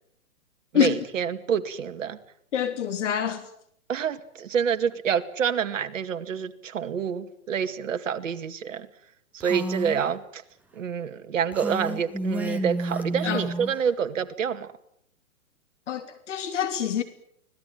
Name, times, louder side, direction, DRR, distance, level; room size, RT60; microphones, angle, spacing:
voice 1, 0.7-2.2 3.9-8.9 9.3-10.4 10.7-14.7, right 7 dB, 65° right, 2.3 m, -27 dB
voice 2, 2.5-3.4 13.2-13.5 15.9-17.0, left 9 dB, 60° left, 2.9 m, -26 dB
Female speech woman speaking, 9.4-10.0 11.5-13.8, right 1 dB, 5° right, 1.9 m, -31 dB
25.0 x 18.5 x 9.1 m
hypercardioid pair, 135°, 42 cm